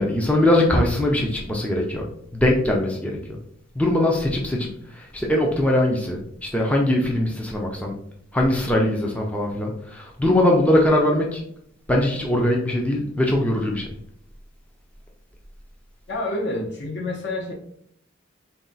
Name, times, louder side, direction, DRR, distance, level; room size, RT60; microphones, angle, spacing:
voice 1, 0.0-2.1 2.3-3.4 3.8-7.9 8.3-11.4 11.9-13.9, left 1 dB, 5° left, -1 dB, 0.4 m, -21 dB
voice 2, 16.1-17.5, left 2 dB, 60° left, 0 dB, 0.9 m, -28 dB
4.1 x 2.3 x 3.8 m, 0.69 s
head